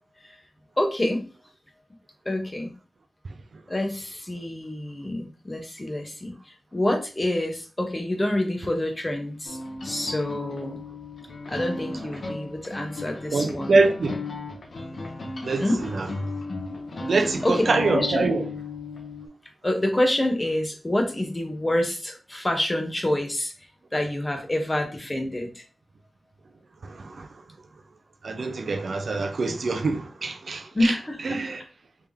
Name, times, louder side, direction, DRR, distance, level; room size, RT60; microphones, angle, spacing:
voice 1, 0.8-1.2 2.2-2.7 3.7-10.8 11.5-13.8 15.6-15.8 17.4-17.6 17.9-18.3 19.6-23.5 23.9-25.6 30.7-31.4, left 1 dB, 20° left, 0.8 m, -27 dB
sound 1, 9.4-19.3, left 3 dB, 60° left, 0.8 m, -35 dB
voice 2, 13.3-14.1 15.4-16.1 17.1-18.4 26.8-27.3 28.2-30.9 31.2-31.6, right 3 dB, 65° right, 0.5 m, -24 dB
3.5 x 2.8 x 3.5 m
wide cardioid pair, 135°, 0 cm